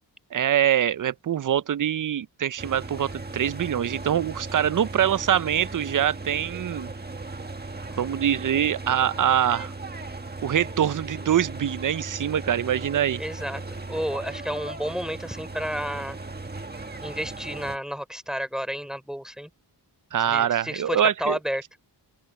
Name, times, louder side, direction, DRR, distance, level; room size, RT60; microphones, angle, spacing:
voice 1, 0.3-6.9 8.0-9.7 10.4-13.2 20.1-21.4, right 10 dB, 50° right, 0.5 m, -24 dB
sound 1, 2.6-17.8, right 3 dB, 20° right, 1.5 m, -37 dB
voice 2, 13.2-13.6 13.9-16.2 17.0-19.5 20.3-21.6, equal, ahead, 3.8 m, -31 dB
open air
wide cardioid pair, 110°, 42 cm